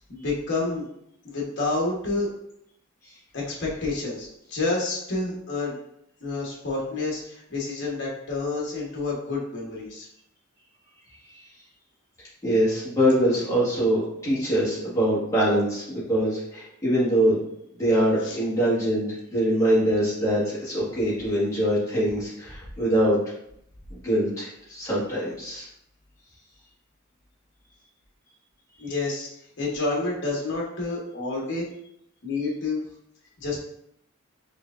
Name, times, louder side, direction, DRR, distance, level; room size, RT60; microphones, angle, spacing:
voice 1, 0.1-0.8 1.2-2.3 3.3-5.8 6.2-10.1 18.2-18.4 28.8-29.3 29.6-31.6 32.2-32.8 33.4-33.6, left 3 dB, 55° left, -3 dB, 1.0 m, -29 dB
voice 2, 12.4-17.4 17.7-23.2 23.9-25.7, equal, 15° left, -8 dB, 1.4 m, -23 dB
4.5 x 3.4 x 2.4 m, 0.75 s
head